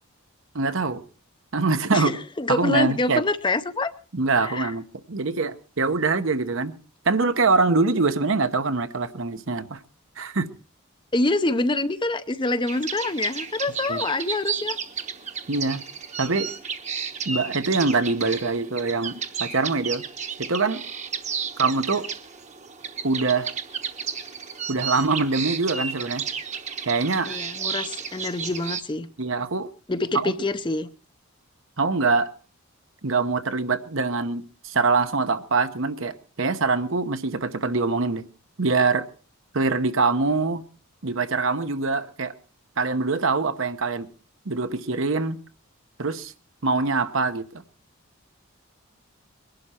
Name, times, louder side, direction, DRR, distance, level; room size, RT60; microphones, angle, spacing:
voice 1, 0.5-1.0 1.5-2.1 2.5-3.2 4.1-6.7 7.0-9.8 10.2-10.5 13.9-14.0 15.5-15.8 16.2-16.5 17.2-20.0 20.4-20.8 21.6-22.1 23.0-23.5 24.7-26.2 26.9-27.4 29.2-29.7 30.1-30.3 31.8-32.3 33.0-38.2 38.6-39.0 39.5-40.6 41.0-42.3 42.8-44.1 44.5-45.4 46.0-46.3 46.6-47.6, right 3 dB, 60° right, 1.0 m, -24 dB
voice 2, 1.9-3.9 4.4-4.7 11.1-14.8 27.3-29.1 29.9-30.9, left 2 dB, 20° left, 0.6 m, -26 dB
sound 1, 12.7-28.8, right 6 dB, 30° right, 1.1 m, -33 dB
21.5 x 11.5 x 4.4 m
head